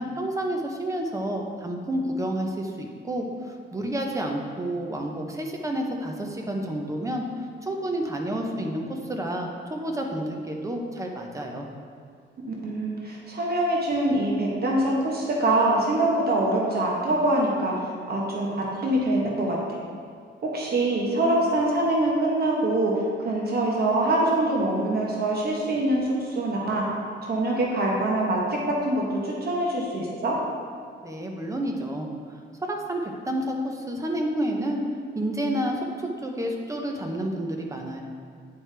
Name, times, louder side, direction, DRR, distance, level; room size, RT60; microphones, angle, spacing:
voice 1, 0.0-7.2 7.6-11.7 31.0-32.1 32.7-34.8 35.1-38.0, right 1 dB, 15° right, 1 dB, 0.7 m, -30 dB
voice 2, 12.5-19.6 20.4-26.8 27.2-30.4, right 1 dB, 50° right, -3 dB, 1.0 m, -24 dB
9.1 x 4.9 x 3.3 m, 2.1 s
wide cardioid pair, 155°, 20 cm